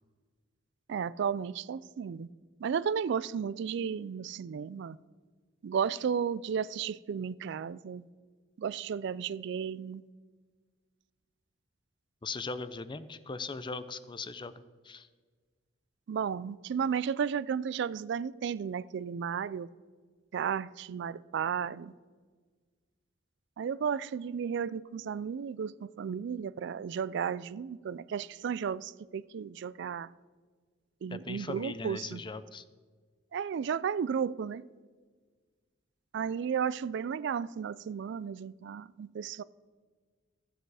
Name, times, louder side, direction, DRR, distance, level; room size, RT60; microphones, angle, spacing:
voice 1, 0.9-2.3 2.6-5.0 5.6-8.1 8.6-10.0 16.1-19.7 20.3-21.9 23.6-30.1 31.0-32.2 33.3-34.7 36.1-39.4, right 7 dB, 65° right, 0.3 m, -33 dB
voice 2, 12.2-15.1 31.1-32.7, left 4 dB, 25° left, 0.5 m, -39 dB
14.0 x 7.9 x 4.8 m
head